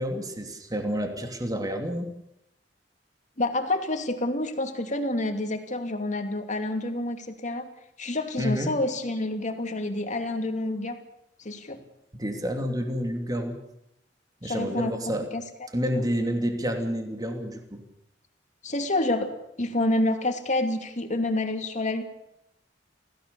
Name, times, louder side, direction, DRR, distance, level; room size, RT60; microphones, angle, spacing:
voice 1, 0.0-2.1 8.4-8.7 12.2-13.6 14.4-15.3 15.7-17.8, equal, 20° right, 4 dB, 2.9 m, -29 dB
voice 2, 3.4-7.7 8.0-11.0 11.4-11.8 14.4-15.0 15.3-15.4 15.9-16.1 18.6-22.0, left 2 dB, 40° left, 6 dB, 2.6 m, -28 dB
28.0 x 17.0 x 7.0 m, 0.82 s
head